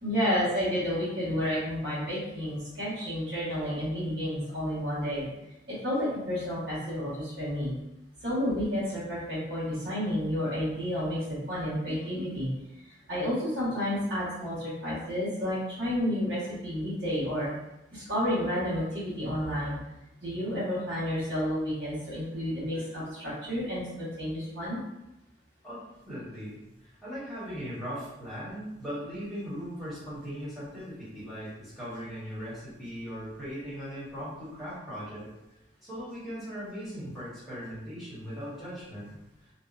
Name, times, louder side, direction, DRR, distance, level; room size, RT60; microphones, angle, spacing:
voice 1, 0.0-5.3 5.7-7.7 8.2-12.5 13.1-17.5 17.9-19.8 20.2-24.8, equal, 65° right, -10 dB, 1.4 m, -31 dB
voice 2, 26.1-35.3 35.8-39.2, equal, ahead, -13 dB, 1.3 m, -39 dB
2.8 x 2.3 x 2.5 m, 0.93 s
head